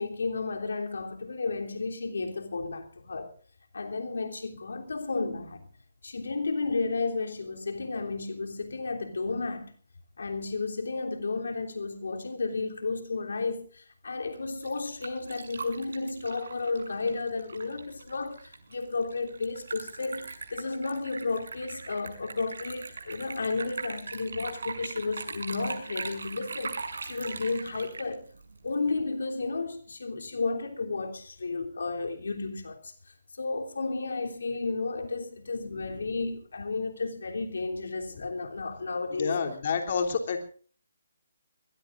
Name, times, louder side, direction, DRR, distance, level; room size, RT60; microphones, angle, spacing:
voice 1, 0.0-3.3 3.7-5.7 6.0-9.7 10.2-28.3 28.6-39.4, left 3 dB, 80° left, 3.2 m, -33 dB
Liquid, 14.3-28.9, right 4 dB, 75° right, 6.2 m, -41 dB
voice 2, 35.8-36.1 38.1-38.3 39.2-40.5, left 5 dB, 50° left, 3.3 m, -30 dB
22.5 x 21.5 x 2.5 m
hypercardioid pair, 160°, 0 cm